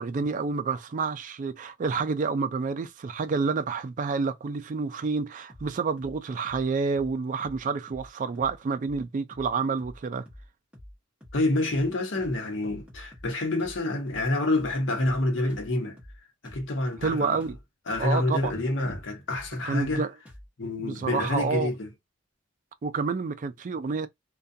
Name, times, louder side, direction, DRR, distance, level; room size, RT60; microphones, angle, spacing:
voice 1, 0.0-10.2 17.0-17.6 18.0-18.5 19.6-20.1 20.8-21.7 22.8-24.1, right 4 dB, 40° right, 0.3 m, -29 dB
sound 1, 5.5-5.7 6.0-6.2 6.4-6.7 6.9-7.1 7.4-7.6 7.9-8.1 8.3-8.6 8.8-9.0 9.3-9.5 9.8-10.0 10.3-10.5 10.7-11.0 11.2-11.4 11.7-11.9 12.2-12.4 12.6-13.3 13.6-13.8 14.1-14.3 14.5-14.8 15.0-15.2 15.5-15.7 16.0-16.2 16.4-16.7 16.9-17.1 17.4-17.6 17.9-18.1 18.4-18.6 18.8-19.0 19.3-19.5 19.8-20.0 20.3-20.5, equal, 5° right, 1.0 m, -47 dB
voice 2, 11.3-16.0 16.4-17.4 17.9-20.0 20.6-21.9, left 2 dB, 70° left, 0.9 m, -27 dB
2.3 x 2.2 x 2.6 m
head